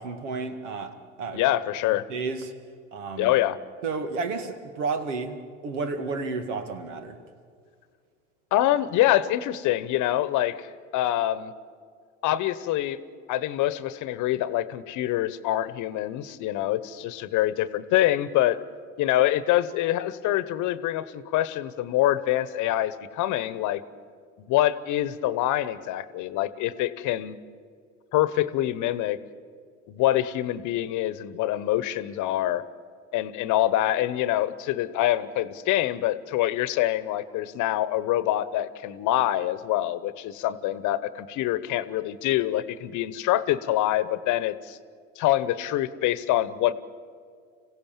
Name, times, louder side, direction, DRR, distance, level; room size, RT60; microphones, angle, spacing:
voice 1, 0.0-1.4 2.1-2.5 2.9-3.3 3.8-5.4 5.6-7.2, right 4 dB, 80° right, 2.0 m, -31 dB
voice 2, 1.3-2.0 3.2-3.6 8.5-10.7 10.9-11.5 12.2-13.0 13.3-18.6 19.0-23.8 24.4-27.4 28.1-29.2 29.9-32.6 33.1-44.8 45.2-46.7, left 13 dB, 55° left, 1.1 m, -25 dB
26.5 x 16.0 x 7.4 m
hypercardioid pair, 80°, 36 cm